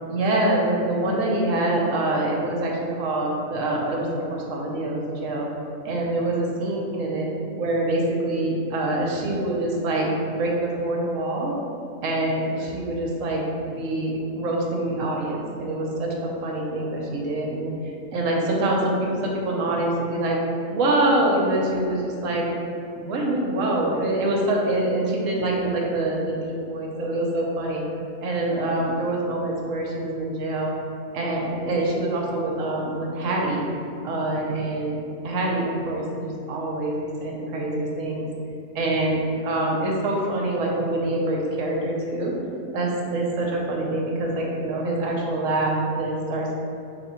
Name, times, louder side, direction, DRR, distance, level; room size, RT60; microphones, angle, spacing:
voice 1, 0.1-5.5 5.8-7.3 7.6-11.5 12.0-20.4 20.7-22.4 22.9-27.8 28.2-30.7 31.1-33.6 34.0-35.0 35.2-38.3 38.8-42.3 42.7-46.5, right 1 dB, 65° right, -1 dB, 0.9 m, -25 dB
3.5 x 2.8 x 4.2 m, 2.7 s
omnidirectional pair, 1.7 m